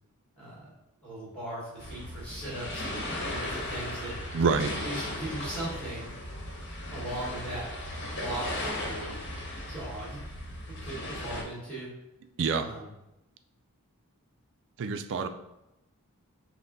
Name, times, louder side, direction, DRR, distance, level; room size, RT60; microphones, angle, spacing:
voice 1, 0.4-0.7 1.0-4.1 4.8-6.2 6.9-7.7 8.1-9.2 9.7-10.2 10.6-11.9 12.5-12.9, right 1 dB, 5° left, -8 dB, 1.6 m, -38 dB
sound 1, 1.8-11.4, left 1 dB, 50° left, 1.0 m, -36 dB
voice 2, 4.3-4.7 12.4-12.7 14.8-15.3, right 5 dB, 55° right, 9 dB, 0.4 m, -26 dB
5.8 x 2.1 x 3.9 m, 0.91 s
head